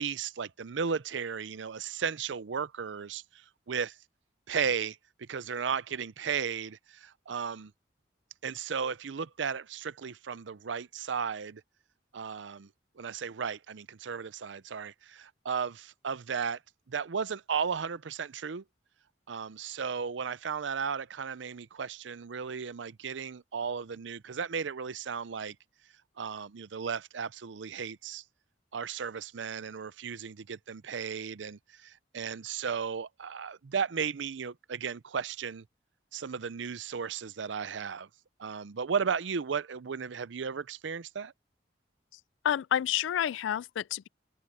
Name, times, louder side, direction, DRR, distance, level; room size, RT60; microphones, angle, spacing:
voice 1, 0.0-4.0 4.5-7.7 8.4-11.6 12.1-12.7 13.0-16.6 16.9-18.6 19.3-25.6 26.2-28.2 28.7-35.6 36.1-38.1 38.4-41.3, right 6 dB, 80° right, 0.6 m, -35 dB
voice 2, 42.4-44.1, left 10 dB, 85° left, 0.3 m, -29 dB
open air
head